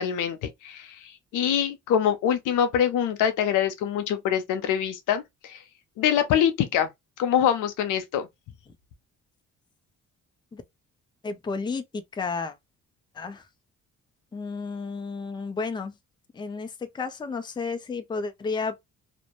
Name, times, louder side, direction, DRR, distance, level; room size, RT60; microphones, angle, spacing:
voice 1, 0.0-5.6 6.0-6.9 7.2-8.3, left 9 dB, 85° left, 0.6 m, -24 dB
voice 2, 11.2-12.6 13.1-13.4 14.3-15.9 16.3-18.8, left 4 dB, 15° left, 0.4 m, -32 dB
2.6 x 2.1 x 2.9 m
cardioid pair, 90°, 30 cm